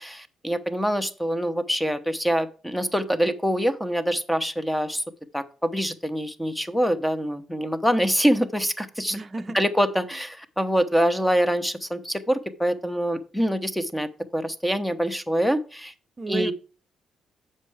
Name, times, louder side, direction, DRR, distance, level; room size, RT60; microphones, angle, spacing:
voice 1, 0.0-5.0 5.3-9.2 9.5-15.9 16.3-16.5, equal, 5° left, 0.8 m, -25 dB
voice 2, 9.1-9.6 16.2-16.5, right 3 dB, 30° right, 0.6 m, -31 dB
7.4 x 5.5 x 4.8 m
cardioid pair, 90°, 0 cm